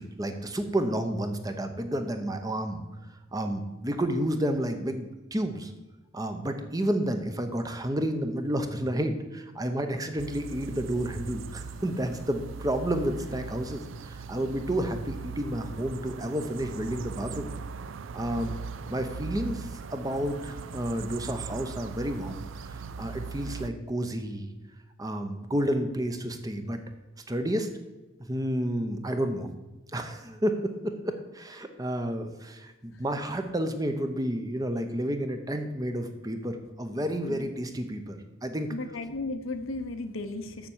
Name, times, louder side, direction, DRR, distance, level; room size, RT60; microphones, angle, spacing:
voice 1, 0.0-2.8 3.3-5.7 6.1-17.5 18.1-18.6 18.9-24.5 25.0-26.8 27.3-27.7 28.2-29.5 29.9-38.7, right 1 dB, 15° right, 7 dB, 0.7 m, -31 dB
sound 1, 10.2-23.7, right 5 dB, 65° right, 0.4 m, -39 dB
voice 2, 38.7-40.7, left 2 dB, 75° left, 8 dB, 0.8 m, -35 dB
7.2 x 6.7 x 7.2 m, 1.1 s
head